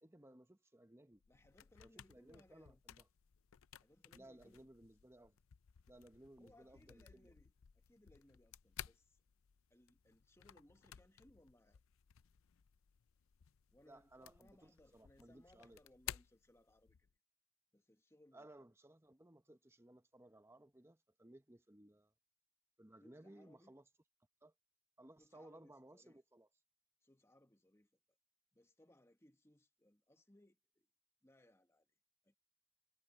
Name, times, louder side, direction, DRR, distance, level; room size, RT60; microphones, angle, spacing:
voice 1, 0.0-1.2 1.8-3.1 4.1-5.4 5.9-7.3 13.9-15.8 18.3-22.1 22.8-23.8 24.4-24.5 25.0-26.5, right 1 dB, 15° right, 1.0 m, -61 dB
sound 1, 1.2-17.1, left 11 dB, 90° left, 0.5 m, -57 dB
voice 2, 1.3-2.8 3.8-4.7 6.4-9.2 9.7-11.8 13.7-17.1 17.7-18.6 23.0-23.7 25.2-26.2 27.0-28.0 28.5-30.9 31.2-31.9 32.2-32.4, left 1 dB, 15° left, 1.4 m, -68 dB
head